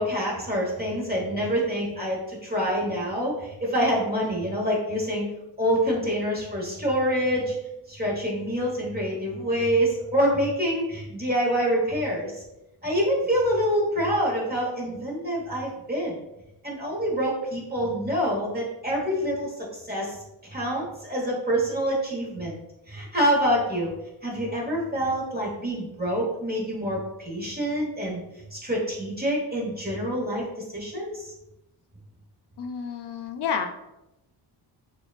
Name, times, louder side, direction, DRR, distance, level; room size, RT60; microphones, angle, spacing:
voice 1, 0.0-5.2 5.6-7.6 7.9-12.3 12.8-16.2 16.6-20.2 20.4-22.6 22.9-23.9 24.2-28.2 28.5-31.3, equal, 20° right, -3 dB, 1.3 m, -26 dB
voice 2, 32.6-33.7, left 6 dB, 65° left, 6 dB, 0.6 m, -30 dB
6.1 x 2.5 x 2.4 m, 0.92 s
cardioid pair, 80°, 44 cm